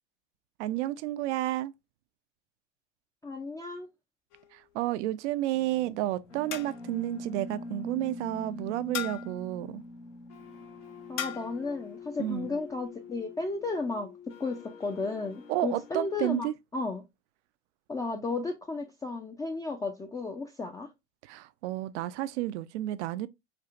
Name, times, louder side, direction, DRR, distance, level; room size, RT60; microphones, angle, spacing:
voice 1, 0.6-1.7 4.5-9.8 12.2-12.5 15.5-16.5 21.2-23.3, right 15 dB, 75° right, 0.5 m, -31 dB
voice 2, 3.2-3.9 11.1-17.0 17.9-20.9, left 3 dB, 10° left, 0.3 m, -34 dB
sound 1, 4.3-4.9 6.5-7.1 8.9-9.5 11.2-11.6, left 12 dB, 60° left, 0.6 m, -38 dB
sound 2, 5.5-16.5, left 3 dB, 85° left, 1.3 m, -45 dB
4.4 x 2.4 x 2.4 m
hypercardioid pair, 90°, 35 cm